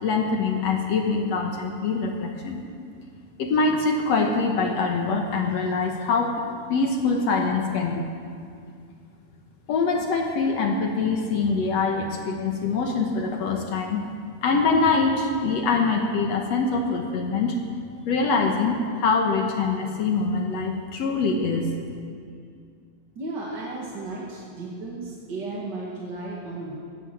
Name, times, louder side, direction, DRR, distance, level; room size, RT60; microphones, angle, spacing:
voice 1, 0.0-2.6 3.4-6.4 6.7-8.1 9.7-14.0 14.4-17.6 18.1-21.7, left 4 dB, 60° left, 2 dB, 1.9 m, -24 dB
voice 2, 23.1-26.8, right 2 dB, 40° right, -4 dB, 1.9 m, -34 dB
16.0 x 12.0 x 7.6 m, 2.3 s
omnidirectional pair, 4.1 m